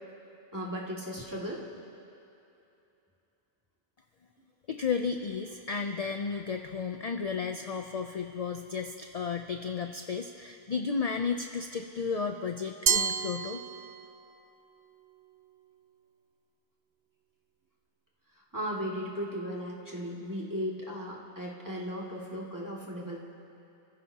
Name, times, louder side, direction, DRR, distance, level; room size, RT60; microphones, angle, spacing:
voice 1, 0.5-1.6 18.5-23.2, equal, 20° right, -5 dB, 2.4 m, -36 dB
voice 2, 4.7-13.6, left 5 dB, 45° left, 6 dB, 0.6 m, -33 dB
Glass, 12.9-14.3, right 8 dB, 75° right, 0.8 m, -29 dB
29.5 x 15.5 x 2.9 m, 2.8 s
omnidirectional pair, 1.1 m